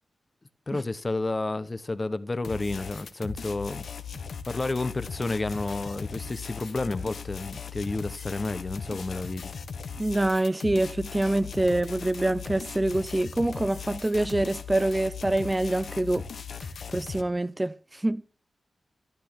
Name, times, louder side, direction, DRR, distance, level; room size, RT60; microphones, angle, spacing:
voice 1, 0.7-3.9 4.5-9.5, left 2 dB, 25° left, 1.0 m, -31 dB
sound 1, 2.4-17.2, left 6 dB, 70° left, 1.5 m, -38 dB
voice 2, 10.0-16.3 16.9-18.2, right 1 dB, 15° right, 0.6 m, -26 dB
13.5 x 13.0 x 6.1 m
wide cardioid pair, 135°, 0 cm